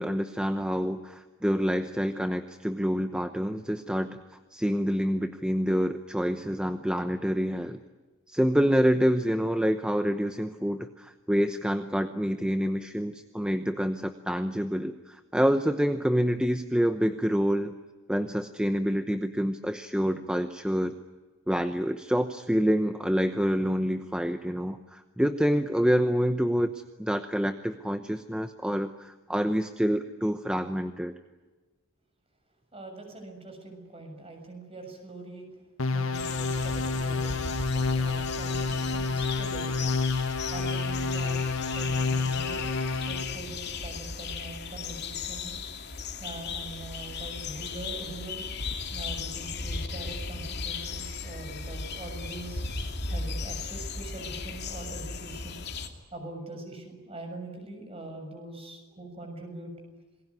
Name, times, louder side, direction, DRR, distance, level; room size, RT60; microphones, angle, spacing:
voice 1, 0.0-4.2 4.5-7.8 8.3-17.7 18.1-20.9 21.5-31.1, equal, 5° right, 8 dB, 0.8 m, -27 dB
voice 2, 32.7-35.5 35.9-40.0 40.5-41.4 41.7-42.7 43.1-45.6 46.0-48.5 48.9-52.6 53.1-55.6 56.1-59.7, right 2 dB, 30° right, 4 dB, 7.0 m, -42 dB
sound 1, 35.8-43.4, left 4 dB, 75° left, 1.6 m, -29 dB
sound 2, 36.1-55.9, left 4 dB, 50° left, 2.7 m, -36 dB
28.0 x 21.0 x 9.8 m, 1.3 s
head